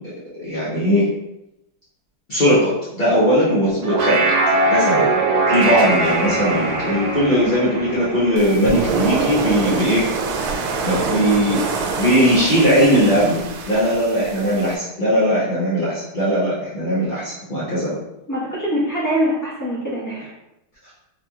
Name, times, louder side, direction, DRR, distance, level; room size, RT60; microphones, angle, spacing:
voice 1, 0.3-1.0 2.3-4.2 4.7-5.1 5.5-10.1 10.8-11.6 11.9-13.4 13.7-17.9, equal, 60° left, -10 dB, 0.5 m, -19 dB
sound 1, 3.7-9.2, right 2 dB, 65° right, 1.2 m, -21 dB
sound 2, 8.4-14.8, right 4 dB, 90° right, 1.5 m, -25 dB
voice 2, 18.3-20.3, equal, 10° left, -8 dB, 0.9 m, -23 dB
4.3 x 2.9 x 2.3 m, 0.88 s
omnidirectional pair, 2.3 m